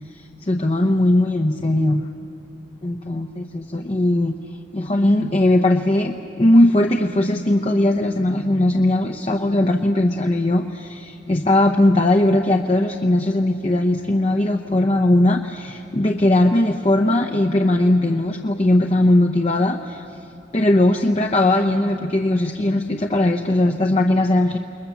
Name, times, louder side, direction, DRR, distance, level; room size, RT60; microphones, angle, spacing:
voice 1, 0.1-2.0 2.8-4.3 4.7-20.2 20.5-24.6, left 1 dB, 35° left, 4 dB, 0.8 m, -19 dB
29.0 x 21.5 x 7.1 m, 2.9 s
head